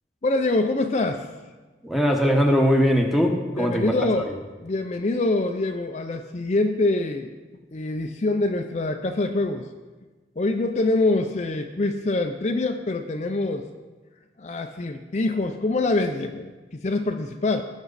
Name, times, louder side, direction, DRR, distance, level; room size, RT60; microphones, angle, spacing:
voice 1, 0.2-1.2 3.6-4.3 4.6-7.3 7.7-9.7 10.4-13.7 14.4-17.6, left 2 dB, 40° left, 5 dB, 0.5 m, -25 dB
voice 2, 1.8-4.0 4.3-4.4, equal, ahead, 1 dB, 1.1 m, -20 dB
18.0 x 6.2 x 4.1 m, 1.3 s
head